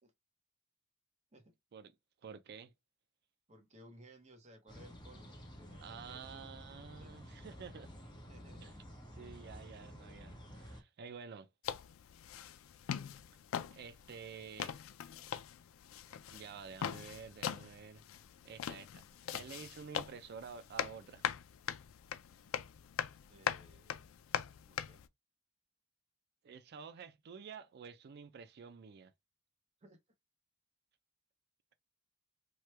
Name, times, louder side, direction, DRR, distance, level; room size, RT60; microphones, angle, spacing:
voice 1, 2.2-2.7 5.8-7.9 8.6-8.7 9.1-11.5 13.7-14.8 16.3-18.0 18.4-19.0 19.3-21.2 26.4-29.1, right 6 dB, 50° right, 0.4 m, -50 dB
voice 2, 3.5-6.4 7.0-7.2 8.3-8.7 14.1-14.4 23.3-24.1 24.7-25.0 29.8-30.0, right 1 dB, 35° right, 0.9 m, -60 dB
sound 1, 4.7-10.8, equal, 20° left, 0.8 m, -52 dB
sound 2, 11.6-25.1, left 9 dB, 80° left, 0.4 m, -42 dB
3.0 x 2.2 x 3.2 m
head